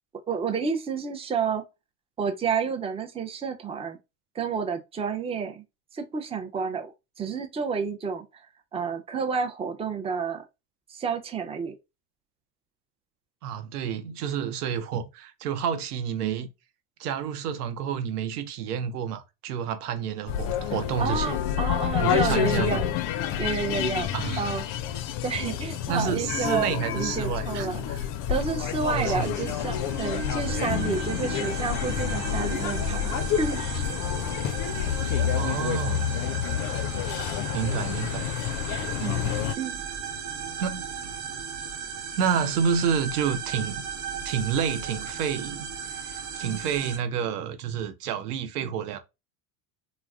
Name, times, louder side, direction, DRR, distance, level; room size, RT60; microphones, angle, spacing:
voice 1, 0.3-1.6 2.2-4.0 4.3-5.6 5.9-8.4 8.7-10.4 10.9-11.7 21.0-22.9 23.4-24.1 24.4-24.6 25.2-27.8 28.3-33.1 33.4-33.8 39.0-39.8, right 5 dB, 15° right, 0.5 m, -30 dB
voice 2, 13.4-16.5 17.0-21.4 22.0-22.8 24.1-24.5 25.9-28.0 28.9-29.5 35.3-36.1 37.5-38.4 40.6-41.1 42.1-43.8 44.2-45.7 46.0-49.0, right 7 dB, 90° right, 0.7 m, -29 dB
sound 1, 20.3-39.5, left 10 dB, 45° left, 0.4 m, -29 dB
sound 2, 28.9-47.0, right 7 dB, 60° right, 1.1 m, -36 dB
2.3 x 2.1 x 3.5 m
hypercardioid pair, 90°, 45 cm